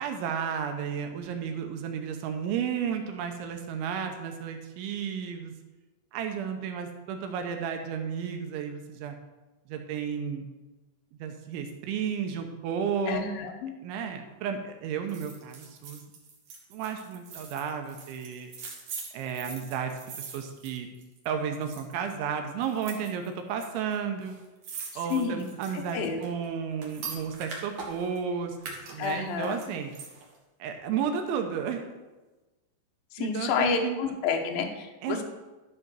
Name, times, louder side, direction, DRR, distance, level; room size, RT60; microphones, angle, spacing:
voice 1, 0.0-5.5 6.1-9.2 9.7-10.5 11.2-13.2 13.8-16.0 16.7-18.5 19.1-19.9 20.2-20.9 21.3-24.4 25.0-28.6 28.9-30.0 30.6-31.9 33.2-34.0 35.0-35.2, right 7 dB, 80° right, 5 dB, 3.1 m, -32 dB
voice 2, 13.1-13.7 25.1-25.5 25.7-26.2 29.0-29.6 33.1-35.2, left 6 dB, 80° left, 3 dB, 2.1 m, -30 dB
sound 1, 15.1-21.3 21.5-22.1 22.6-23.7 23.9-24.0 24.2-28.2 28.6-30.4 30.7-30.8, right 5 dB, 60° right, 2.0 m, -42 dB
12.0 x 4.9 x 6.3 m, 1.2 s
omnidirectional pair, 5.6 m